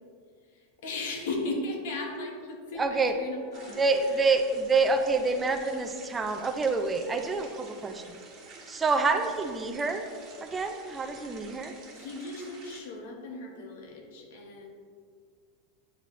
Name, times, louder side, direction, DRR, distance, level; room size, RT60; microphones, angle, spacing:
voice 1, 0.4-4.3 11.9-14.7, left 2 dB, 75° left, 2 dB, 1.1 m, -37 dB
voice 2, 2.8-3.1 3.8-8.1 8.7-10.0 10.4-11.7, right 3 dB, 15° right, 6 dB, 0.4 m, -27 dB
sound 1, 3.5-12.8, right 3 dB, 35° right, 1.3 m, -50 dB
8.5 x 4.2 x 3.1 m, 2.1 s
supercardioid pair, 155°, 0 cm